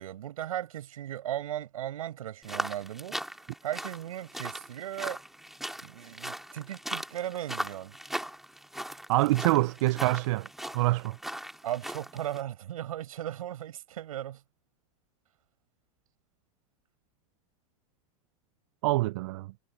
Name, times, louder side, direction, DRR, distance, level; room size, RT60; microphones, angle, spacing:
voice 1, 0.0-3.2 3.6-5.2 5.8-8.0 11.6-14.4, right 12 dB, 85° right, 7.7 m, -37 dB
sound 1, 2.4-12.4, right 1 dB, ahead, 2.1 m, -39 dB
voice 2, 9.1-10.5 10.7-11.2 18.8-19.5, right 19 dB, 60° right, 0.4 m, -25 dB
supercardioid pair, 145°, 18 cm